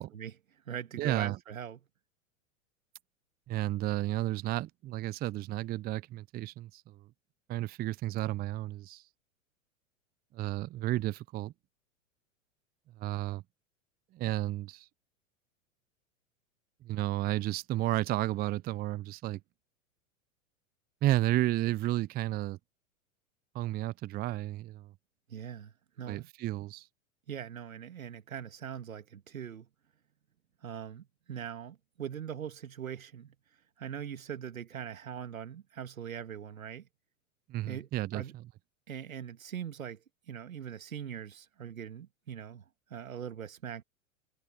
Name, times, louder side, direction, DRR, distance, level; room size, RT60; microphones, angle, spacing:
voice 1, 0.0-1.8 25.3-26.3 27.3-29.7 30.6-33.4 33.8-36.9 37.7-38.3 38.9-42.6 42.9-43.8, right 8 dB, 80° right, 2.2 m, -41 dB
voice 2, 1.0-1.4 3.5-7.0 7.5-9.0 10.3-11.5 13.0-13.4 14.1-14.9 16.8-19.4 21.0-22.6 23.5-24.9 26.1-26.9 37.5-38.4, right 15 dB, 25° right, 0.6 m, -32 dB
hypercardioid pair, 100°, 40 cm